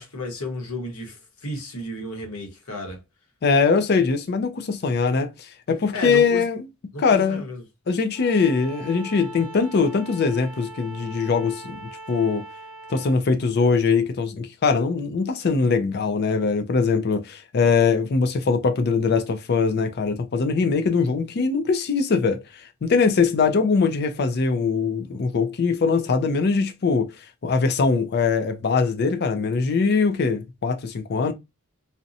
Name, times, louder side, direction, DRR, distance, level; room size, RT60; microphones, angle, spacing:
voice 1, 0.0-3.0 5.9-6.4 6.9-7.6, left 1 dB, 80° left, 1.0 m, -33 dB
voice 2, 3.4-6.6 7.0-7.5 7.9-12.4 12.9-31.3, left 5 dB, 50° left, 0.4 m, -22 dB
Bowed string instrument, 8.1-13.2, right 2 dB, 20° right, 0.6 m, -41 dB
2.7 x 2.1 x 2.5 m
head